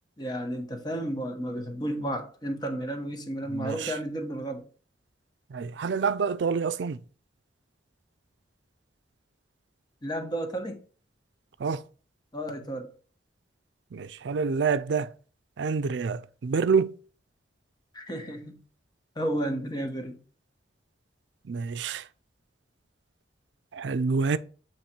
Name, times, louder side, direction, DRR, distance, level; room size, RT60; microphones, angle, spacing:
voice 1, 0.2-4.6 10.0-10.8 12.3-12.9 17.9-18.6 19.2-20.2, right 1 dB, 25° left, 1.1 m, -32 dB
voice 2, 3.5-3.9 5.5-7.0 11.6-11.8 13.9-15.1 15.6-17.0 21.5-22.1 23.7-24.4, right 5 dB, 80° right, 0.4 m, -27 dB
8.5 x 3.1 x 4.4 m
head